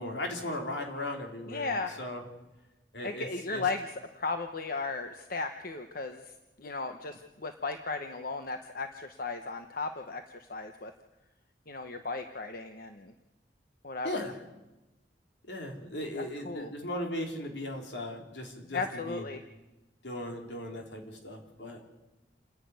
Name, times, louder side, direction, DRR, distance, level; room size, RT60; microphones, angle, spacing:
voice 1, 0.0-2.3 2.9-3.7 14.0-14.3 15.5-19.3 20.0-21.8, left 1 dB, 75° left, 3 dB, 3.4 m, -37 dB
voice 2, 1.5-1.9 3.0-6.2 6.6-10.9 11.7-13.1 13.8-14.3 16.2-16.7 18.7-19.4, left 3 dB, 55° left, 7 dB, 1.0 m, -36 dB
28.0 x 10.5 x 9.5 m, 1.1 s
head